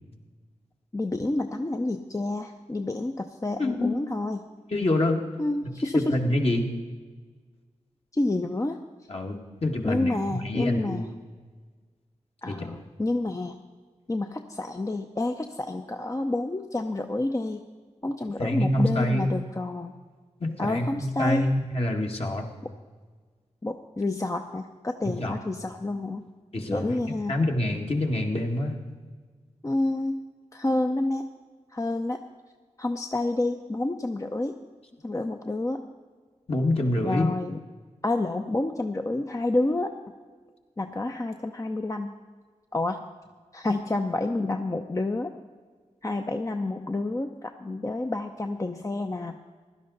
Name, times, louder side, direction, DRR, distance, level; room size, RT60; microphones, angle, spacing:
voice 1, 0.9-4.5 5.4-6.2 8.1-8.8 9.8-11.1 12.4-13.6 14.1-17.6 18.0-19.9 20.6-21.5 22.6-22.7 23.6-26.3 26.7-27.4 29.6-30.2 30.5-31.3 31.7-32.2 32.8-34.6 35.0-35.8 37.0-37.6 38.0-39.9 40.8-42.1 42.7-43.1 43.5-45.3 46.0-49.4, left 2 dB, 25° left, 5 dB, 0.7 m, -29 dB
voice 2, 3.6-4.0 4.7-5.2 5.9-6.7 9.1-11.1 12.5-12.7 18.4-19.3 20.4-22.5 25.0-25.3 26.5-27.0 27.3-28.8 36.5-37.3, left 1 dB, 50° left, 1 dB, 1.9 m, -26 dB
16.0 x 11.5 x 4.0 m, 1.5 s
cardioid pair, 45°, 13 cm